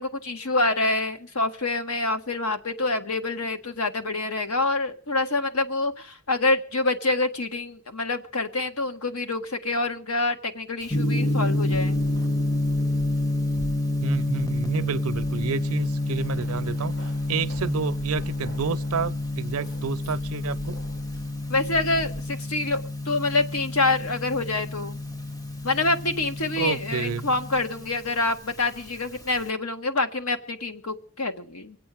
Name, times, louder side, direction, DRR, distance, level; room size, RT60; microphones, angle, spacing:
voice 1, 0.0-12.0 21.5-25.0 25.6-31.8, left 2 dB, 80° left, 1.7 m, -26 dB
Gong, 10.9-29.5, left 1 dB, 15° left, 0.7 m, -29 dB
Keys jangling, 11.7-22.2, right 1 dB, 65° left, 3.6 m, -43 dB
voice 2, 14.0-20.8 26.6-27.3, right 5 dB, 80° right, 0.6 m, -30 dB
25.5 x 8.5 x 5.0 m
head